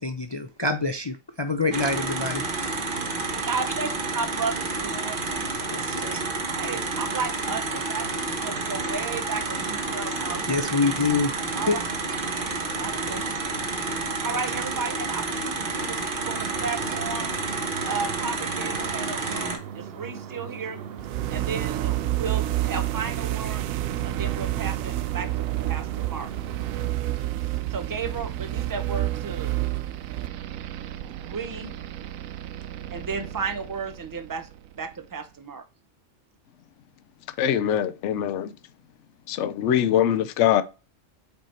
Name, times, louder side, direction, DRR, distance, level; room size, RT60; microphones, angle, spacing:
voice 1, 0.0-2.9 5.7-6.2 10.5-11.8, left 3 dB, 45° left, 0.3 m, -27 dB
sound 1, 1.7-19.6, right 3 dB, 45° right, 1.3 m, -30 dB
voice 2, 3.4-5.2 6.5-10.7 11.5-11.8 12.8-13.4 14.2-17.4 17.8-20.8 21.3-23.6 24.0-26.3 27.7-29.5 31.2-31.7 32.9-34.5 34.8-35.6, right 4 dB, 20° right, 0.6 m, -34 dB
sound 2, 16.2-27.0, right 8 dB, 60° right, 0.8 m, -39 dB
sound 3, 21.0-34.9, right 15 dB, 85° right, 1.0 m, -30 dB
voice 3, 37.4-38.5 39.3-40.6, left 10 dB, 70° left, 0.9 m, -22 dB
5.3 x 4.6 x 4.3 m
omnidirectional pair, 1.4 m